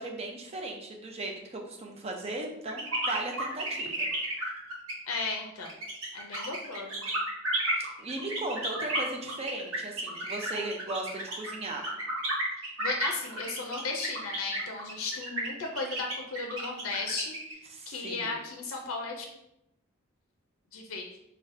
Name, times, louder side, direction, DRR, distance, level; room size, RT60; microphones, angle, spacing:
voice 1, 0.0-4.1 7.8-11.9 17.7-18.3, right 2 dB, 30° right, 1 dB, 0.5 m, -37 dB
sound 1, 2.7-17.5, right 1 dB, 85° right, 0.9 m, -33 dB
voice 2, 5.1-5.7 6.1-7.0 12.8-17.3 17.9-19.2 20.7-21.1, left 3 dB, 80° left, 2 dB, 0.5 m, -35 dB
4.0 x 2.2 x 2.5 m, 0.84 s
head